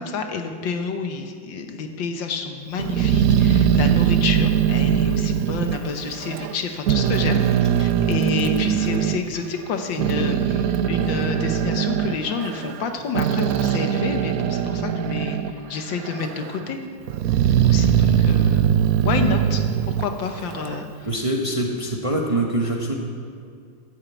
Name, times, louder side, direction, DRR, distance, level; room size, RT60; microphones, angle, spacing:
voice 1, 0.0-7.4 7.8-16.8 17.6-19.6 20.0-20.9, left 5 dB, 75° left, 6 dB, 1.7 m, -29 dB
Growling, 2.8-6.6 6.9-9.2 9.7-15.6 15.9-16.6 17.1-20.8, right 9 dB, 75° right, 0.8 m, -21 dB
voice 2, 21.1-22.9, right 1 dB, 20° right, 0 dB, 0.9 m, -25 dB
11.0 x 9.1 x 8.3 m, 2.3 s
omnidirectional pair, 2.1 m